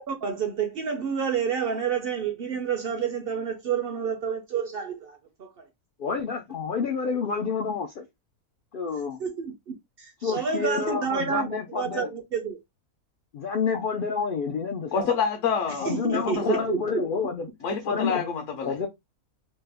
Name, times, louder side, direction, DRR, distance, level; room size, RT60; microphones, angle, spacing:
voice 1, 0.0-5.7 9.2-11.5 11.8-12.6 15.9-17.0, right 7 dB, 60° right, 0.6 m, -29 dB
voice 2, 6.0-8.1 8.7-9.2 10.2-12.1 13.3-15.1 15.8-17.5 17.8-18.2 18.6-18.9, left 5 dB, 80° left, 0.4 m, -29 dB
voice 3, 14.9-16.7 17.6-18.7, left 6 dB, 65° left, 0.9 m, -28 dB
3.2 x 2.1 x 3.3 m
omnidirectional pair, 1.5 m